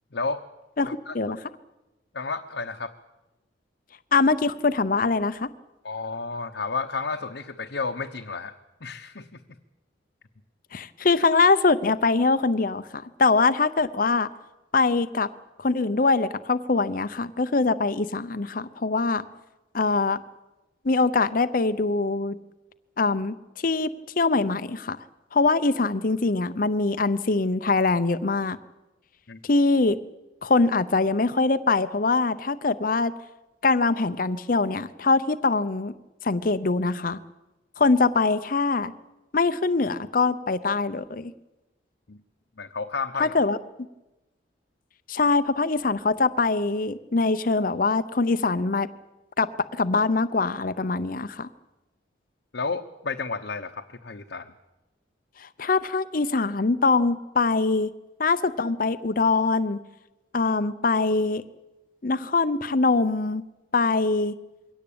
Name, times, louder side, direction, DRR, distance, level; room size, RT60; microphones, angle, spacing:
voice 1, 0.1-0.4 0.9-1.1 2.1-2.9 5.8-9.4 29.3-29.4 42.1-42.2 42.6-43.3 52.5-54.5, left 4 dB, 65° left, 4 dB, 1.0 m, -32 dB
voice 2, 0.8-1.4 4.1-5.5 10.7-14.3 14.7-15.3 15.6-19.3 19.7-20.2 20.8-22.4 23.0-23.9 24.2-25.0 25.3-28.6 29.4-30.0 30.4-33.1 33.6-35.9 36.2-37.2 37.8-38.9 39.3-41.3 43.2-43.6 45.1-48.9 49.4-51.5 55.4-57.9 58.2-59.8 60.3-61.4 62.0-63.4 63.7-64.3, left 3 dB, 45° left, 12 dB, 0.7 m, -23 dB
23.0 x 17.5 x 8.7 m, 1.1 s
head